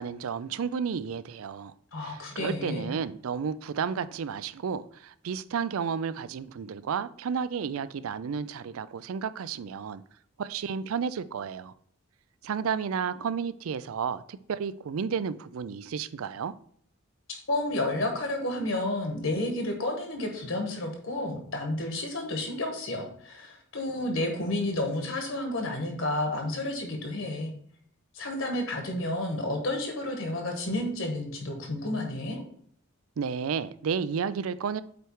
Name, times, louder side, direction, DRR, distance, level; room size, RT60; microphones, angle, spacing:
voice 1, 0.0-1.7 2.0-10.0 10.4-11.7 12.4-16.5 33.2-34.8, right 6 dB, 75° right, 0.4 m, -32 dB
voice 2, 1.9-2.9 17.3-27.5 28.1-32.4, left 1 dB, 65° left, 1.4 m, -31 dB
7.9 x 3.2 x 4.6 m
head